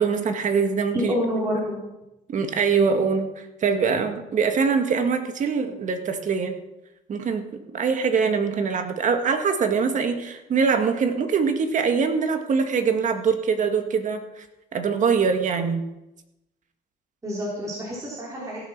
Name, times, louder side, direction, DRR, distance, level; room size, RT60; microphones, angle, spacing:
voice 1, 0.0-1.1 2.3-6.6 7.1-7.5 7.7-14.4 14.7-15.8, right 5 dB, 45° right, 6 dB, 1.9 m, -23 dB
voice 2, 0.9-1.8 17.2-18.7, equal, 20° right, -6 dB, 4.1 m, -28 dB
16.5 x 7.7 x 6.0 m, 0.94 s
cardioid pair, 110°, 17 cm